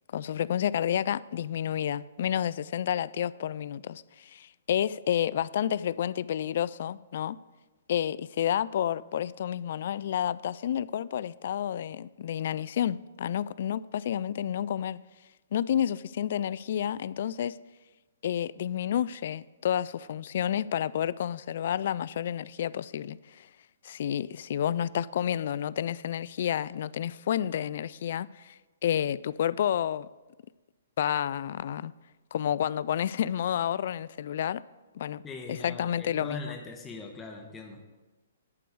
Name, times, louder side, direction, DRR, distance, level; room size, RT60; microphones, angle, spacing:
voice 1, 0.1-7.4 7.9-15.0 15.5-17.6 18.2-23.5 23.8-30.1 31.0-31.9 32.3-34.6 34.9-35.2 35.5-36.6, left 10 dB, 55° left, 0.3 m, -30 dB
voice 2, 35.2-37.8, left 3 dB, 15° left, 1.1 m, -41 dB
11.0 x 4.6 x 8.0 m
hypercardioid pair, 130°, 0 cm